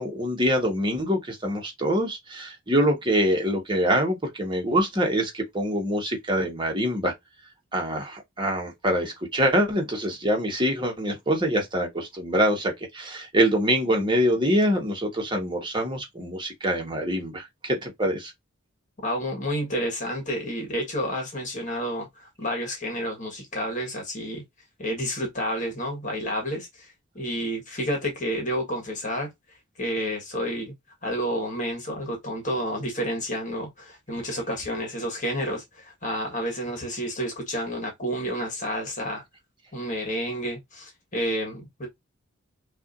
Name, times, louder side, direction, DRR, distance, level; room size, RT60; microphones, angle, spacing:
voice 1, 0.0-7.1 7.7-18.3, equal, 25° right, 1.3 m, -25 dB
voice 2, 19.0-24.4 24.8-29.3 29.8-30.7 31.0-39.2 39.7-41.9, equal, 40° left, 1.5 m, -30 dB
5.9 x 2.6 x 2.5 m
head